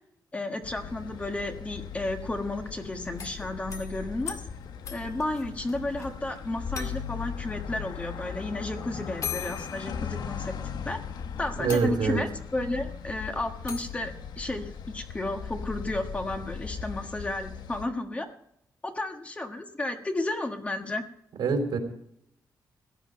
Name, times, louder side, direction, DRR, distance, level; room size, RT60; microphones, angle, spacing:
voice 1, 0.3-4.4 4.9-10.5 10.8-11.0 11.4-18.3 18.8-21.0, left 2 dB, 20° left, 5 dB, 1.4 m, -32 dB
sound 1, 0.6-17.9, left 7 dB, 80° left, 1.1 m, -38 dB
sound 2, 3.1-6.1 6.4-6.5 6.7-7.3 8.4-8.5 9.2-10.6 11.1-11.2 11.7-12.4 13.7-14.0, left 7 dB, 50° left, 1.9 m, -40 dB
voice 2, 11.6-12.2 21.4-21.8, right 5 dB, 90° right, 5 dB, 3.6 m, -25 dB
16.5 x 11.5 x 5.3 m, 0.72 s
wide cardioid pair, 170°, 7 cm